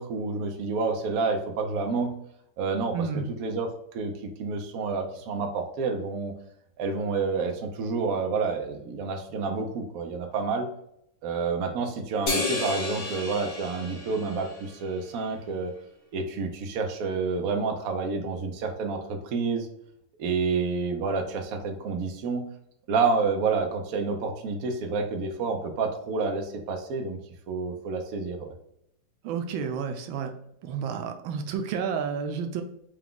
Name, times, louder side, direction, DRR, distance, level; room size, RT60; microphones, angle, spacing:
voice 1, 0.0-2.1 2.6-3.0 3.4-6.3 6.8-10.7 11.2-15.7 16.1-19.7 20.2-22.5 22.9-27.2 27.5-28.5, right 4 dB, 90° right, 4 dB, 0.7 m, -29 dB
voice 2, 2.9-3.3 29.2-30.3 30.6-32.6, right 6 dB, 75° right, 6 dB, 1.3 m, -30 dB
sound 1, 12.3-15.0, left 2 dB, 40° left, 1.2 m, -32 dB
4.7 x 2.3 x 3.6 m, 0.75 s
omnidirectional pair, 2.4 m